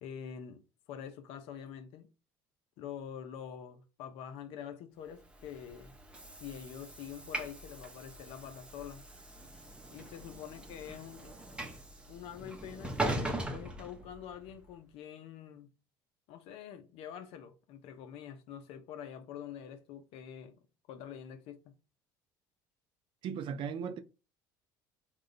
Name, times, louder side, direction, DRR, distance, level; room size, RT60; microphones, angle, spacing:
voice 1, 0.0-2.1 2.8-5.9 6.4-9.1 9.9-11.4 12.1-15.7 16.3-20.6 20.9-21.7, left 9 dB, 70° left, 0.7 m, -46 dB
Train / Sliding door, 5.3-14.6, right 1 dB, 10° right, 0.9 m, -40 dB
voice 2, 23.2-24.0, right 7 dB, 55° right, 0.6 m, -37 dB
3.7 x 2.4 x 3.2 m
supercardioid pair, 80°, 10 cm